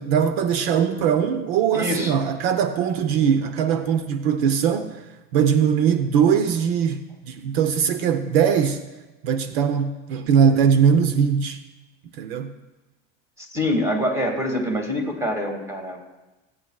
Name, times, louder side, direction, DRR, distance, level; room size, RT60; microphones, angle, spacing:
voice 1, 0.0-5.0 5.3-8.8 9.2-11.6 12.2-12.5, right 7 dB, 75° right, 0.9 m, -21 dB
voice 2, 1.7-2.1 13.4-16.0, left 1 dB, 10° right, 2.3 m, -25 dB
27.0 x 9.1 x 2.4 m
supercardioid pair, 125°, 30 cm